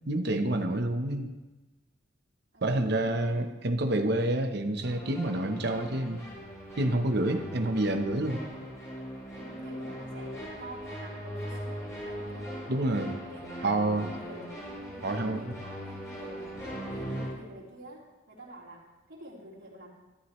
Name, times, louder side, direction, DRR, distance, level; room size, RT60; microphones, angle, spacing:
voice 1, 0.1-1.3 2.6-6.2 6.8-8.4 12.7-13.1 13.6-14.1 15.0-15.5, right 1 dB, 55° right, 6 dB, 0.9 m, -28 dB
voice 2, 2.5-3.5 9.3-13.8 14.1-14.6 14.9-16.6 16.9-19.9, right 1 dB, 80° right, -4 dB, 3.8 m, -48 dB
sound 1, 4.8-17.3, equal, 15° left, 4.7 m, -40 dB
14.5 x 12.5 x 3.2 m, 1.1 s
head